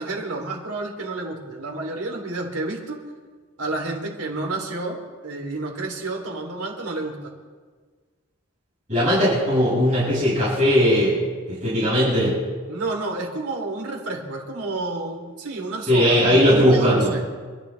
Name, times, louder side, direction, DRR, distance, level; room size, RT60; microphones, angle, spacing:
voice 1, 0.0-3.0 3.6-7.2 11.7-11.9 12.7-17.2, right 2 dB, 85° right, 1 dB, 3.5 m, -30 dB
voice 2, 8.9-11.2 11.5-12.4 15.9-17.1, equal, 35° right, -8 dB, 6.5 m, -18 dB
27.0 x 13.0 x 3.5 m, 1.5 s
head